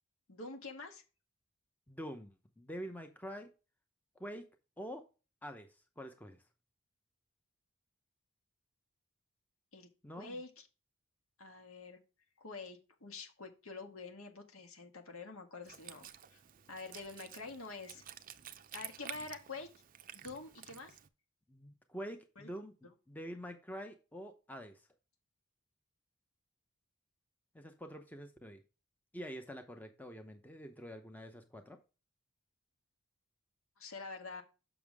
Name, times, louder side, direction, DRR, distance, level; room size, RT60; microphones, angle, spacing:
voice 1, 0.3-1.0 9.7-9.9 10.2-10.7 11.4-12.0 12.4-16.4 16.7-18.0 18.7-19.7 20.1-21.0 22.4-22.5 33.8-34.4, left 3 dB, 75° left, 5 dB, 1.6 m, -47 dB
voice 2, 1.9-3.5 4.2-4.4 4.8-5.0 5.4-5.7 6.0-6.4 10.0-10.4 21.5-22.7 23.1-24.8 27.5-28.6 29.1-31.8, equal, 10° left, 6 dB, 0.7 m, -46 dB
Wind instrument woodwind instrument, 15.6-21.1, right 10 dB, 40° right, 0.5 m, -51 dB
7.1 x 6.0 x 3.5 m, 0.31 s
head